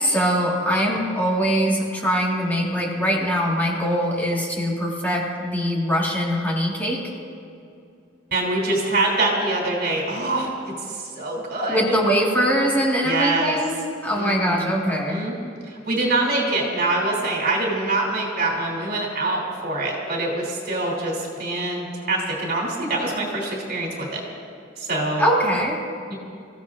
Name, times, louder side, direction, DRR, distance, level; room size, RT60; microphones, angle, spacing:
voice 1, 0.0-7.0 11.7-13.7 14.0-15.2 25.2-25.8, equal, 10° left, -4 dB, 1.9 m, -22 dB
voice 2, 8.3-10.5 10.8-11.9 13.0-13.6 14.1-14.7 15.1-15.3 15.6-24.2 24.8-25.3 26.1-26.2, right 2 dB, 55° right, -2 dB, 3.3 m, -24 dB
27.5 x 15.5 x 2.6 m, 2.5 s
head